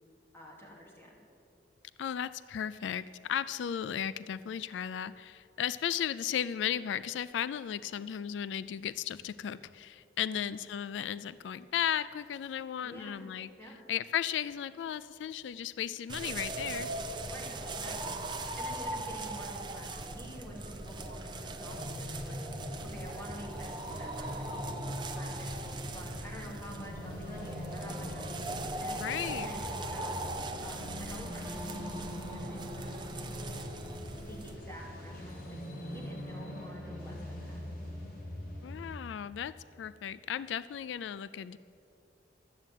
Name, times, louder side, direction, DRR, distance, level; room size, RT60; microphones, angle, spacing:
voice 1, 0.3-1.2 10.3-10.6 12.8-13.3 13.6-13.8 17.3-18.2 18.6-22.4 22.8-24.7 25.1-30.2 30.6-33.6 34.2-37.6, equal, 15° left, -3 dB, 2.8 m, -49 dB
voice 2, 2.0-13.5 13.9-17.1 29.0-29.5 38.6-41.6, left 9 dB, 85° left, 15 dB, 0.3 m, -35 dB
sound 1, 16.1-34.6, right 2 dB, 25° right, 0.7 m, -40 dB
sound 2, 21.6-39.0, left 1 dB, 55° left, 2.7 m, -42 dB
12.5 x 7.7 x 9.1 m, 2.7 s
head